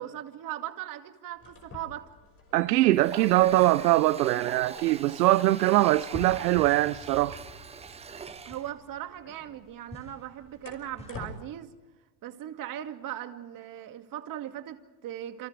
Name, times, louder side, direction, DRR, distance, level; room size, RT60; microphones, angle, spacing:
voice 1, 0.0-2.1 8.4-11.8 12.2-15.5, right 12 dB, 45° right, 2.3 m, -39 dB
sound 1, 1.3-11.4, left 4 dB, 30° left, 5.5 m, -51 dB
voice 2, 2.5-7.4, right 16 dB, 85° right, 0.8 m, -22 dB
Water tap faucet, 2.9-8.7, right 6 dB, 15° right, 0.7 m, -42 dB
sound 2, 6.1-11.4, left 1 dB, 15° left, 5.1 m, -46 dB
30.0 x 28.5 x 3.4 m
supercardioid pair, 115°, 47 cm